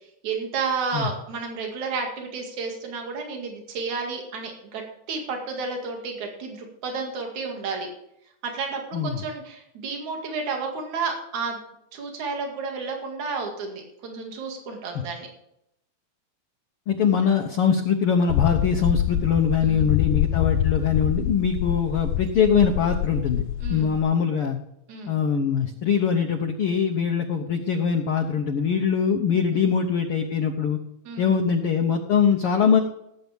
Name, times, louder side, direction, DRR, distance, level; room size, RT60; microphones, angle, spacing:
voice 1, 0.2-4.8 5.1-7.9 8.4-11.6 11.9-15.3 19.6-19.9 23.6-24.0 24.9-25.2 29.5-29.7 31.0-31.4, right 4 dB, 70° right, 2 dB, 3.5 m, -31 dB
voice 2, 16.9-23.4 23.7-24.6 25.1-30.8 31.2-32.8, left 6 dB, 65° left, 3 dB, 1.5 m, -22 dB
sound 1, 18.3-24.0, left 12 dB, 85° left, 2.0 m, -25 dB
18.0 x 8.3 x 3.5 m, 0.78 s
omnidirectional pair, 3.5 m